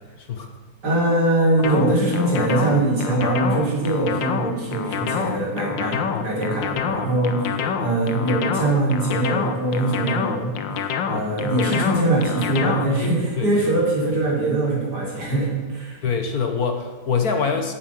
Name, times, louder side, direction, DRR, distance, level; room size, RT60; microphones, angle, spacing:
voice 1, 0.2-0.5 3.1-3.2 5.9-6.3 7.6-7.7 11.1-11.6 13.0-13.7 14.1-14.2 16.0-17.7, left 5 dB, 55° left, 5 dB, 1.6 m, -26 dB
voice 2, 0.8-10.5 11.1-16.0, right 2 dB, 60° right, -3 dB, 4.3 m, -22 dB
sound 1, 1.6-13.1, left 7 dB, 85° left, 1.7 m, -27 dB
15.0 x 9.0 x 6.3 m, 1.5 s
omnidirectional pair, 2.0 m